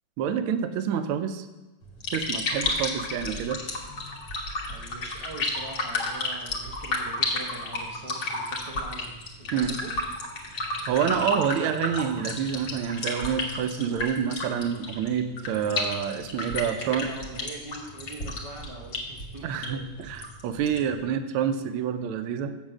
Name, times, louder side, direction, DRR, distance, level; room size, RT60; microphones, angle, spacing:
voice 1, 0.2-1.5 2.1-3.6 9.5-9.8 10.9-17.1 19.4-22.5, right 8 dB, 80° right, 9 dB, 1.5 m, -28 dB
sound 1, 1.8-21.0, left 2 dB, 55° left, 1.9 m, -32 dB
voice 2, 4.7-9.9 16.7-20.1, right 2 dB, 40° right, -3 dB, 0.4 m, -43 dB
7.5 x 7.3 x 6.1 m, 1.1 s
omnidirectional pair, 2.4 m